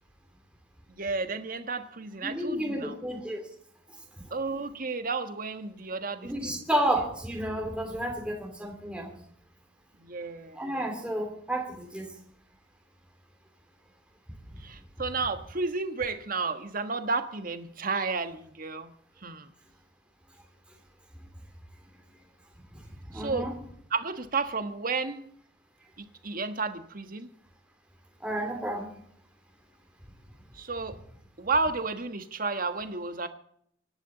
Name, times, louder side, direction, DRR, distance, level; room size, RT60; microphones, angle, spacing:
voice 1, 0.9-2.9 4.3-6.6 10.0-10.6 14.6-18.9 19.2-19.5 23.1-23.5 23.9-25.3 26.0-27.3 30.5-31.0 31.4-33.3, right 4 dB, 45° right, 8 dB, 1.4 m, -32 dB
voice 2, 2.2-3.4 4.2-4.3 6.2-9.1 10.5-12.1 23.1-23.5 28.2-28.9, right 1 dB, 5° right, 1 dB, 2.9 m, -31 dB
25.0 x 11.5 x 4.0 m, 0.66 s
head